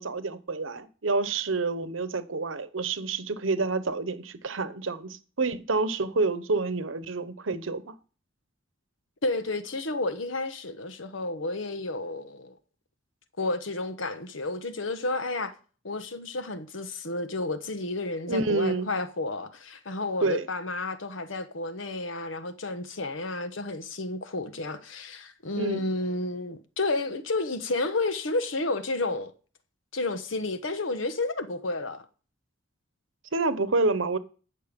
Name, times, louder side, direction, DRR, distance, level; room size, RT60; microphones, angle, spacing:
voice 1, 0.0-7.9 18.3-18.9 20.2-20.5 25.6-25.8 33.3-34.2, right 3 dB, 70° right, 1.0 m, -28 dB
voice 2, 9.2-12.5 13.4-15.5 15.8-29.3 29.9-32.0, left 2 dB, 70° left, 1.2 m, -31 dB
13.5 x 6.6 x 5.2 m
head